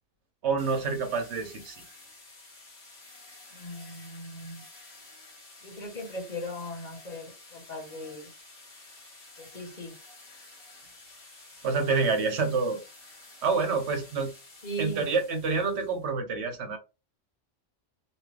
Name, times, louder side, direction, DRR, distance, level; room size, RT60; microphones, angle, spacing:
voice 1, 0.4-1.8 11.6-12.8 13.4-14.3 14.8-16.8, right 4 dB, 65° right, 1.1 m, -27 dB
sound 1, 0.6-16.1, left 2 dB, 55° left, 1.2 m, -51 dB
voice 2, 3.5-4.6 5.6-8.3 9.4-9.9 14.6-15.1, equal, 40° left, 1.2 m, -38 dB
3.0 x 2.3 x 3.3 m
omnidirectional pair, 1.2 m